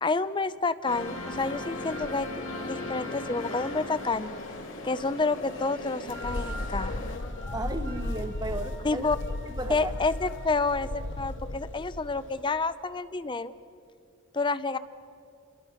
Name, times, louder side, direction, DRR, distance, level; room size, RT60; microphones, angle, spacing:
voice 1, 0.0-4.3 4.8-6.9 7.5-7.6 8.8-9.2 9.7-13.5 14.3-14.8, left 3 dB, 25° left, 14 dB, 0.6 m, -29 dB
sound 1, 0.9-7.2, left 2 dB, 90° left, 3.1 m, -38 dB
sound 2, 5.4-10.7, right 1 dB, 70° right, 3.3 m, -47 dB
sound 3, 6.1-12.4, left 1 dB, 65° left, 1.0 m, -35 dB
voice 2, 7.5-9.0 9.5-9.9, right 1 dB, 20° right, 8 dB, 1.3 m, -34 dB
28.0 x 22.0 x 5.8 m, 2.4 s
head